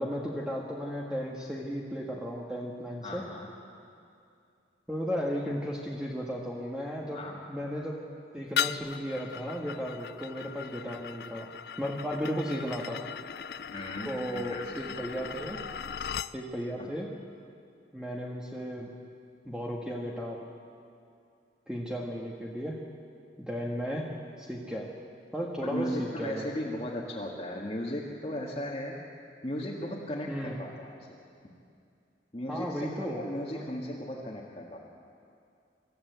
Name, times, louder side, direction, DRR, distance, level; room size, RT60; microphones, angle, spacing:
voice 1, 0.0-3.2 4.9-7.2 7.5-8.0 8.3-11.5 11.8-13.0 14.0-15.6 16.3-17.1 17.9-18.9 19.4-20.4 21.7-22.8 23.4-24.1 24.4-24.9 25.3-26.4 30.3-30.6 32.5-33.2 33.5-33.6, equal, 5° right, -3 dB, 1.6 m, -34 dB
voice 2, 3.0-3.5 7.1-7.4 13.7-15.0 15.6-15.8 16.8-16.9 25.6-29.0 29.4-31.1 32.3-34.8, left 1 dB, 35° left, -5 dB, 1.8 m, -36 dB
sound 1, 8.6-16.3, left 8 dB, 55° left, 0.4 m, -38 dB
26.0 x 14.0 x 8.2 m, 2.5 s
head